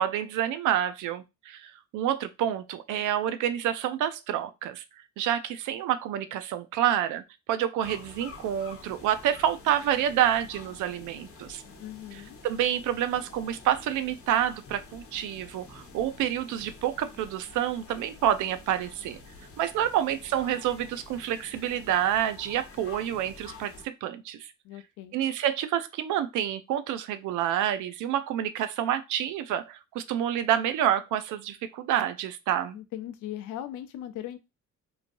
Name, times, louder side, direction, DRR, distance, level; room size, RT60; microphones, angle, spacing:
voice 1, 0.0-4.8 5.2-11.6 12.1-19.2 19.6-24.5 25.1-32.8, right 11 dB, 85° right, 0.5 m, -28 dB
sound 1, 7.8-23.9, left 4 dB, 50° left, 0.9 m, -48 dB
voice 2, 11.8-12.4 24.6-25.1 32.7-34.4, left 12 dB, 85° left, 0.5 m, -39 dB
3.0 x 2.6 x 2.6 m
cardioid pair, 90°, 30 cm